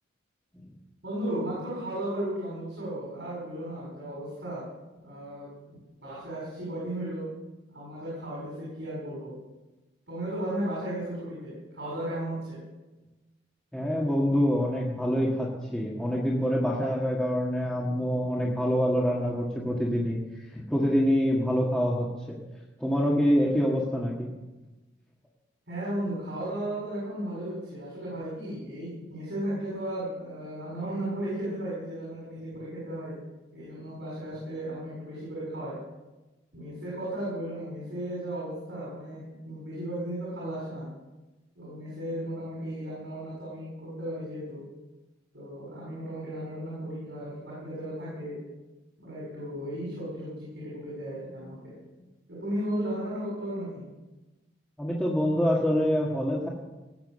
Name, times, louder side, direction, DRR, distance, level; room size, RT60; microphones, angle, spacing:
voice 1, 1.0-4.6 5.0-7.2 7.7-9.4 10.1-12.6 25.7-33.2 33.5-35.8 36.5-40.9 41.6-44.6 45.3-48.4 49.0-51.7 52.3-53.9, right 1 dB, 70° right, -7 dB, 7.0 m, -35 dB
voice 2, 13.7-20.2 20.5-22.4 22.8-24.3 54.8-56.5, equal, 5° left, -5 dB, 1.8 m, -26 dB
19.5 x 8.9 x 6.4 m, 1.1 s
head